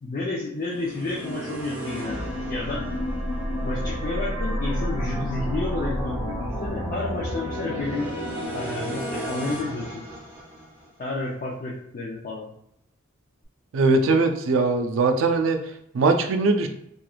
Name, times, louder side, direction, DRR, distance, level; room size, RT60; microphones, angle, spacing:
voice 1, 0.0-2.8 3.6-8.1 8.5-10.0 11.0-12.5, left 2 dB, 40° left, -5 dB, 0.5 m, -31 dB
sound 1, 0.6-10.9, equal, 10° right, 0.8 m, -30 dB
voice 2, 13.7-15.6 15.9-16.7, right 3 dB, 70° right, 6 dB, 0.4 m, -20 dB
3.1 x 2.4 x 2.3 m, 0.76 s
head